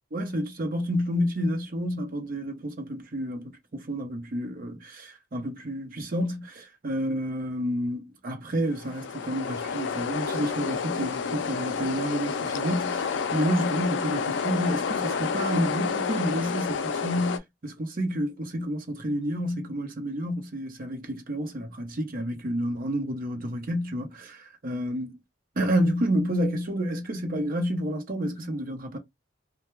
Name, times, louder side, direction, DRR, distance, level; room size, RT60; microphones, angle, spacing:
voice 1, 0.1-25.1 25.6-29.0, equal, 50° right, 0.7 m, -29 dB
sound 1, 8.7-17.4, left 5 dB, 65° left, 0.4 m, -29 dB
2.2 x 2.2 x 3.0 m
head